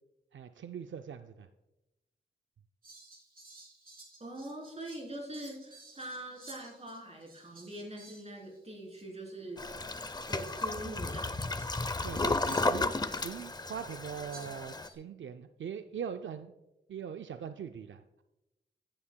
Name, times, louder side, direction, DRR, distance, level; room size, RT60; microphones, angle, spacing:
voice 1, 0.3-1.5 12.0-12.9 13.2-16.5 16.9-18.2, right 7 dB, 80° right, 8 dB, 0.4 m, -41 dB
Fowl, 2.8-8.6 8.9-9.0 9.6-13.5 14.3-14.9, right 2 dB, 50° right, 3.8 m, -55 dB
voice 2, 4.2-9.6 10.3-11.6, right 1 dB, 35° right, -1 dB, 3.2 m, -43 dB
Toilet flush, 9.6-14.9, left 2 dB, 20° left, 0.5 m, -33 dB
14.5 x 8.6 x 2.2 m, 0.97 s
wide cardioid pair, 65°, 19 cm